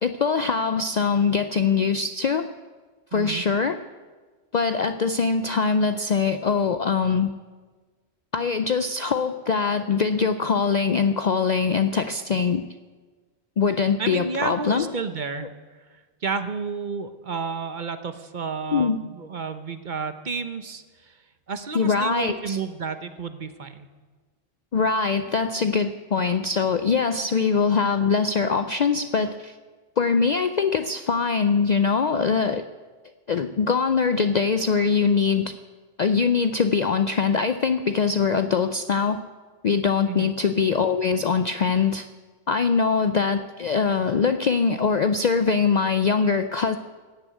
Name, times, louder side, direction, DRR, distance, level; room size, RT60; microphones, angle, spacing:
voice 1, 0.0-2.5 3.1-3.8 4.5-7.3 8.3-12.6 13.6-14.9 18.7-19.0 21.7-22.6 24.7-29.6 30.0-32.6 33.3-35.5 36.0-39.2 39.6-42.1 42.5-46.8, left 5 dB, 55° left, 9 dB, 0.5 m, -22 dB
voice 2, 3.1-3.4 14.0-15.5 15.9-21.2 21.5-23.9 40.1-40.3, right 5 dB, 45° right, 10 dB, 0.9 m, -31 dB
16.5 x 7.1 x 9.3 m, 1.4 s
omnidirectional pair, 1.2 m